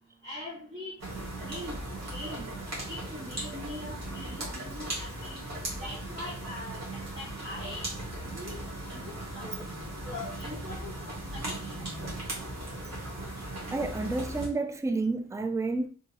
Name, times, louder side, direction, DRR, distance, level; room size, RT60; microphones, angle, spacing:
voice 1, 0.2-0.9 1.4-1.8 2.1-2.5 2.9-5.4 5.8-7.9 8.3-8.6 8.9-9.0 9.3-9.6 10.0-11.7, left 1 dB, 40° right, 1.7 m, -42 dB
sound 1, 1.0-14.5, right 1 dB, 55° right, 1.7 m, -38 dB
voice 2, 13.7-15.9, right 3 dB, 10° right, 0.4 m, -30 dB
3.5 x 2.8 x 2.8 m
cardioid pair, 60°, 31 cm